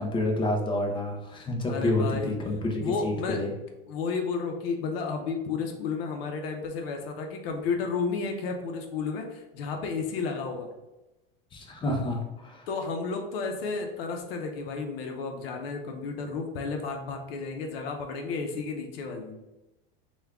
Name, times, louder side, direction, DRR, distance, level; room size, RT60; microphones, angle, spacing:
voice 1, 0.0-3.5 11.5-12.7, left 1 dB, 15° left, 1 dB, 0.5 m, -29 dB
voice 2, 1.7-2.4 2.8-3.4 3.9-10.7 12.7-19.4, left 4 dB, 80° left, 4 dB, 0.6 m, -32 dB
3.4 x 2.3 x 3.4 m, 1.0 s
supercardioid pair, 145°, 29 cm